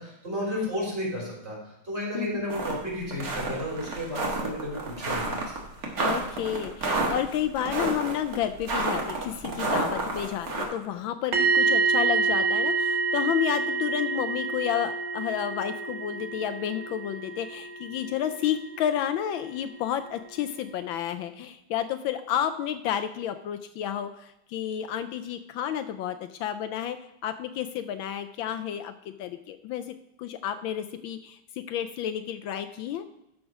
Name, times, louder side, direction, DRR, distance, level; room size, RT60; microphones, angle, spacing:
voice 1, 0.0-5.6, equal, 30° right, -4 dB, 4.5 m, -33 dB
sound 1, 2.5-2.7 3.1-10.6, right 2 dB, 45° right, 1.9 m, -29 dB
voice 2, 6.0-27.0 27.2-33.1, left 10 dB, 75° left, 9 dB, 1.3 m, -31 dB
sound 2, 11.3-19.2 19.5-19.7, right 4 dB, 80° right, 1.9 m, -28 dB
12.5 x 5.0 x 4.7 m, 0.87 s
omnidirectional pair, 2.3 m